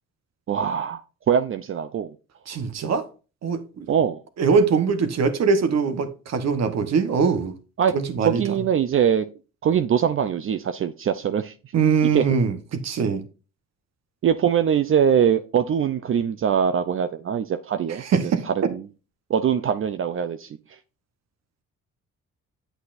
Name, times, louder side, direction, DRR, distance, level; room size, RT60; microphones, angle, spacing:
voice 1, 0.5-1.0 1.3-2.1 2.5-2.6 3.9-4.2 7.8-7.9 8.2-9.3 9.6-11.5 12.0-12.3 14.2-18.0 18.5-18.8 19.3-20.6, right 8 dB, 45° right, 0.5 m, -22 dB
voice 2, 2.5-3.0 3.4-3.9 4.4-7.5 7.9-8.6 11.7-12.6 12.8-13.2 18.0-18.4, right 5 dB, 60° right, 1.3 m, -22 dB
8.2 x 7.9 x 2.6 m
cardioid pair, 90°, 30 cm